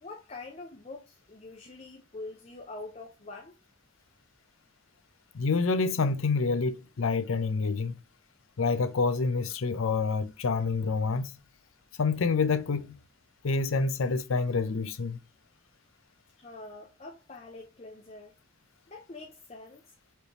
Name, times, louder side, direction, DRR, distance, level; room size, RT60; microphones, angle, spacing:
voice 1, 0.0-3.5 16.4-18.4 18.9-19.8, left 2 dB, 30° left, 0.6 m, -45 dB
voice 2, 5.3-8.0 8.6-11.3 12.0-13.0 13.4-15.2, left 4 dB, 80° left, 0.5 m, -27 dB
4.3 x 3.3 x 2.8 m
head